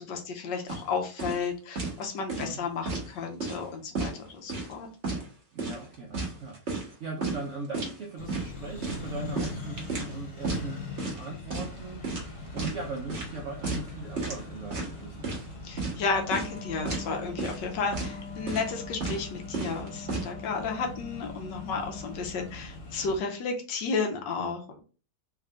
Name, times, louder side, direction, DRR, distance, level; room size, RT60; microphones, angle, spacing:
voice 1, 0.0-4.9 15.6-24.8, left 4 dB, 80° left, 3 dB, 1.4 m, -32 dB
sound 1, 0.7-0.8 1.2-1.4 1.7-2.0 2.3-3.1 3.4-3.6 3.9-4.7 5.0-5.2 5.6-6.9 7.2-7.4 7.7-7.9 8.3-8.5 8.8-10.1 10.4-10.6 11.0-11.2 11.5-11.8 12.0-12.8 13.1-13.3 13.6-13.9 14.2-14.4 14.7-15.4 15.8-16.0 16.3-16.6 16.8-17.1 17.4-17.6 17.9-18.1 18.5-18.7 19.0-19.2 19.5-20.3, right 3 dB, 40° right, 1.3 m, -33 dB
voice 2, 5.5-15.5, right 3 dB, 70° right, 0 dB, 0.7 m, -39 dB
Accelerating revving vroom, 8.2-23.2, left 2 dB, 45° left, 1.1 m, -42 dB
Wind instrument woodwind instrument, 16.1-22.6, left 5 dB, 65° left, 1.2 m, -44 dB
3.6 x 2.5 x 3.3 m, 0.36 s
omnidirectional pair, 1.9 m